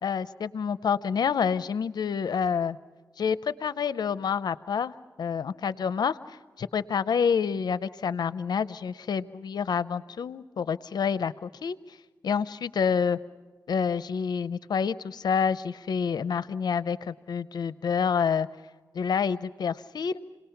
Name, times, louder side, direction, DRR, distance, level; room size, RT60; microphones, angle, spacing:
voice 1, 0.0-2.8 3.2-11.8 12.2-13.2 13.7-18.5 18.9-20.2, left 6 dB, 80° left, 15 dB, 0.6 m, -28 dB
28.5 x 19.0 x 5.8 m, 1.3 s
cardioid pair, 65°, 7 cm